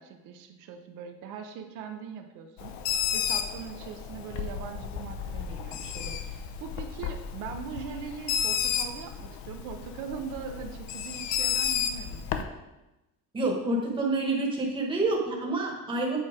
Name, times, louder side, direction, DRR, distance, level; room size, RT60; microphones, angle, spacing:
voice 1, 0.0-12.3, right 6 dB, 80° right, 5 dB, 0.8 m, -41 dB
Bird, 2.6-12.4, left 8 dB, 65° left, 0.7 m, -32 dB
voice 2, 13.3-16.2, right 2 dB, 15° right, -2 dB, 1.3 m, -28 dB
8.5 x 4.3 x 4.9 m, 1.0 s
cardioid pair, 175°, 31 cm